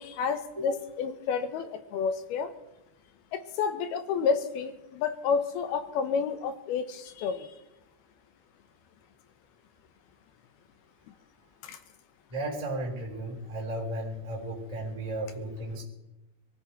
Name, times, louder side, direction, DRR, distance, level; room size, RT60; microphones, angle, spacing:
voice 1, 0.0-2.5 3.3-7.5 11.7-11.8, left 6 dB, 75° left, 9 dB, 2.9 m, -30 dB
voice 2, 12.3-15.8, right 1 dB, 10° right, -2 dB, 3.0 m, -34 dB
23.5 x 13.5 x 4.5 m, 0.97 s
omnidirectional pair, 4.7 m